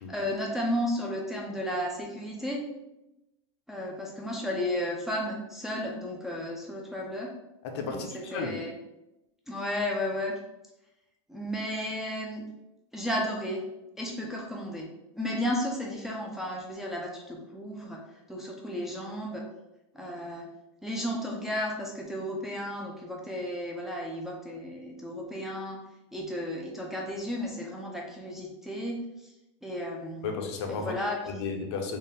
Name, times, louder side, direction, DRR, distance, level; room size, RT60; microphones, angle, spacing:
voice 1, 0.1-2.6 3.7-7.3 7.9-8.7 9.5-10.3 11.3-12.5 12.9-13.7 14.0-14.9 15.2-18.0 18.3-19.4 19.9-20.5 20.8-25.8 26.1-29.3 29.6-30.4 30.7-31.2, left 1 dB, ahead, -2 dB, 0.4 m, -33 dB
voice 2, 7.6-8.6 30.2-32.0, left 4 dB, 60° left, 3 dB, 0.7 m, -34 dB
3.8 x 2.1 x 4.0 m, 0.93 s
supercardioid pair, 145°, 16 cm